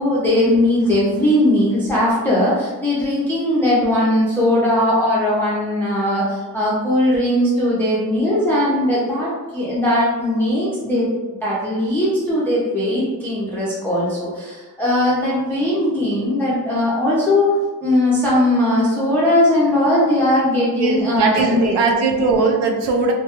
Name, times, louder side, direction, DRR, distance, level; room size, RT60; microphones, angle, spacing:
voice 1, 0.0-11.1 11.4-17.5 17.8-21.7, left 1 dB, 5° left, -8 dB, 0.3 m, -19 dB
voice 2, 20.8-23.1, right 4 dB, 90° right, 2 dB, 0.5 m, -19 dB
2.1 x 2.1 x 2.8 m, 1.3 s
wide cardioid pair, 140°, 39 cm